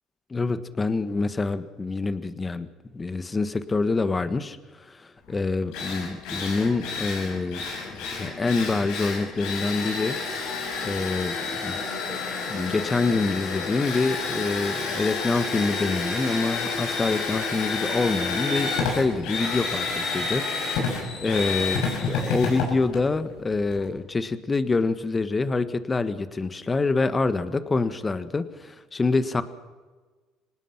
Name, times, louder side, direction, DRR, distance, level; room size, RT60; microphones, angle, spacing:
voice 1, 0.3-2.7 2.9-7.6 8.2-10.2 10.8-12.2 12.5-20.4 20.7-29.4, left 3 dB, 25° left, 12 dB, 1.5 m, -26 dB
Drill, 5.3-5.4 5.7-23.9, left 4 dB, 75° left, 6.5 m, -29 dB
26.0 x 19.0 x 5.9 m, 1.4 s
supercardioid pair, 90°, 0 cm